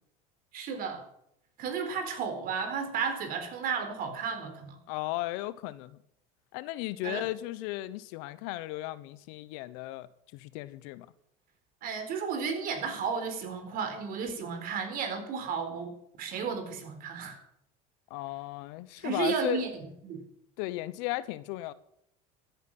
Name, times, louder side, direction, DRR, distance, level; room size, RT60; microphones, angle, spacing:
voice 1, 0.5-1.0 1.6-4.8 7.0-7.2 11.8-17.4 19.0-19.7 20.0-20.2, right 6 dB, 55° right, 4.2 m, -33 dB
voice 2, 4.9-6.0 6.5-11.1 18.1-19.6 20.6-21.7, left 17 dB, 75° left, 1.0 m, -35 dB
14.0 x 9.5 x 7.6 m
supercardioid pair, 110°, 18 cm